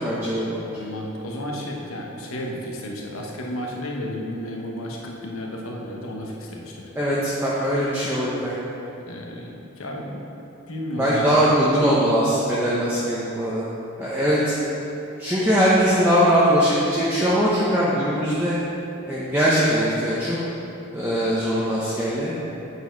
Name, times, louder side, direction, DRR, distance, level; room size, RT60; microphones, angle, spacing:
voice 1, 0.0-0.8 7.0-8.6 11.0-13.6 14.0-14.5 15.2-18.6 19.1-20.4 20.9-22.3, equal, 10° right, -9 dB, 0.8 m, -21 dB
voice 2, 0.6-6.9 9.1-10.2 10.7-11.5, equal, 75° left, -1 dB, 1.1 m, -32 dB
8.3 x 4.7 x 4.6 m, 2.9 s
head